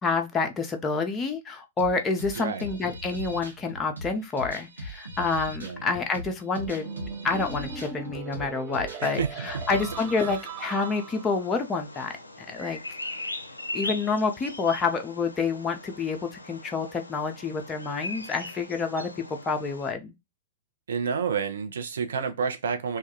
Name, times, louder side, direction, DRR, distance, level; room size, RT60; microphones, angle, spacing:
voice 1, 0.0-6.9 7.2-12.2 12.5-12.8 13.7-19.1 19.4-20.1, left 4 dB, 20° left, 0.4 m, -28 dB
sound 1, 1.8-10.4, equal, 85° right, 0.8 m, -39 dB
voice 2, 2.4-2.7 5.6-5.8 9.0-9.3 10.2-10.3 20.9-23.0, right 6 dB, 65° right, 0.5 m, -29 dB
sound 2, 6.6-11.5, right 5 dB, 30° right, 0.8 m, -39 dB
Bird vocalization bird call bird song, 9.4-19.9, left 2 dB, 90° left, 0.4 m, -40 dB
2.2 x 2.2 x 2.8 m
figure-of-eight pair, 105°, 0 cm